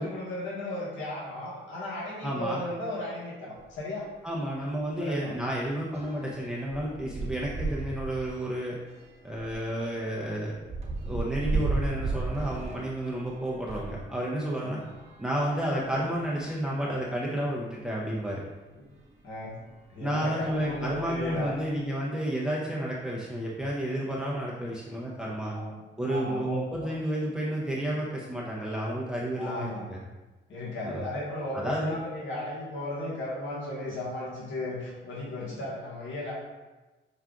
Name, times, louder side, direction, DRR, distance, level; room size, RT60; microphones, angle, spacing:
voice 1, 0.0-4.1 5.0-5.3 14.6-14.8 18.7-18.9 19.2-19.6 19.9-21.5 25.5-25.7 26.1-26.9 29.3-29.8 30.5-36.3, left 1 dB, 75° left, -5 dB, 1.4 m, -35 dB
voice 2, 2.2-2.6 4.2-8.8 9.2-10.5 11.0-14.8 15.2-18.4 20.0-25.6 26.0-30.0 30.8-31.0 31.5-32.0, right 1 dB, 5° right, -5 dB, 0.6 m, -31 dB
sound 1, 3.6-3.8 4.1-4.3 4.6-14.0 14.8-16.1 16.8-16.9 17.1-17.2 18.9-19.0 19.7-20.0 20.3-21.6, right 3 dB, 35° right, 0.9 m, -36 dB
5.8 x 2.4 x 3.6 m, 1.2 s
cardioid pair, 90°, 20 cm